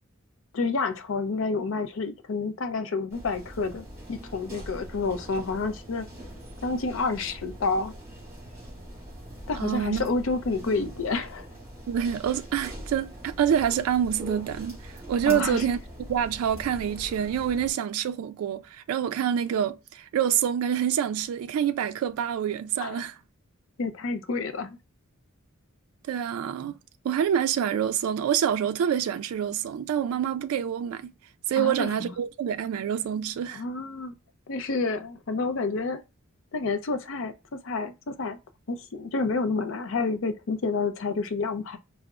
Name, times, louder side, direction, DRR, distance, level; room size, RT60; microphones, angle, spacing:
voice 1, 0.5-6.1 6.6-7.9 9.5-11.5 15.3-15.6 22.8-23.0 23.8-24.8 31.6-32.1 33.5-34.1 34.5-36.0 36.5-38.4 38.7-41.8, left 3 dB, 65° left, 0.5 m, -29 dB
sound 1, 3.1-17.7, equal, 15° right, 1.8 m, -43 dB
voice 2, 9.5-10.1 11.9-15.8 16.1-23.1 26.1-26.8 27.0-31.1 31.5-33.6, right 9 dB, 85° right, 0.3 m, -27 dB
4.6 x 2.0 x 2.4 m
head